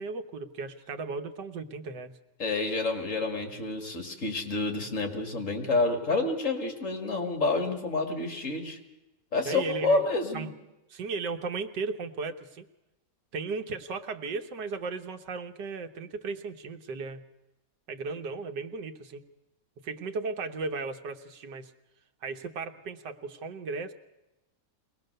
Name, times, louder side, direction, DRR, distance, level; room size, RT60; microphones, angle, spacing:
voice 1, 0.0-2.1 9.4-10.0 10.3-10.5 10.9-12.7 13.3-17.2 17.9-19.2 19.8-21.7 22.2-23.9, right 4 dB, 90° right, 8 dB, 1.8 m, -35 dB
voice 2, 2.4-8.8 9.3-10.5, left 3 dB, 50° left, 5 dB, 2.6 m, -29 dB
22.5 x 19.0 x 6.7 m, 1.0 s
omnidirectional pair, 1.8 m